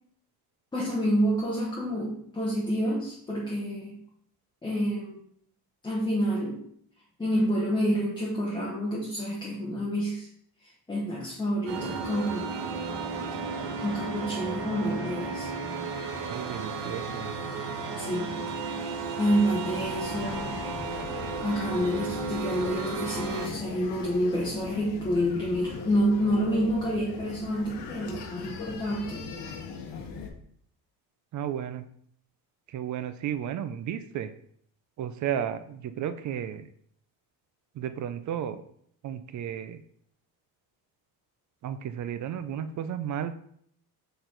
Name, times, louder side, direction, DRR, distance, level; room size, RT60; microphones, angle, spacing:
voice 1, 0.7-4.0 4.6-5.2 5.8-6.6 7.2-10.3 10.9-12.5 13.8-15.5 18.0-18.4 18.7-20.6 21.4-29.3, equal, 10° left, -4 dB, 0.8 m, -28 dB
sound 1, 11.7-23.5, right 4 dB, 90° right, 1.2 m, -34 dB
voice 2, 16.3-17.3 31.3-31.8 32.7-34.3 35.0-36.7 37.7-38.6 39.0-39.8 41.6-43.3, right 9 dB, 45° right, 11 dB, 0.4 m, -33 dB
sound 2, 19.6-30.3, left 5 dB, 85° left, 1.1 m, -40 dB
6.7 x 4.4 x 3.8 m, 0.65 s
cardioid pair, 175°, 41 cm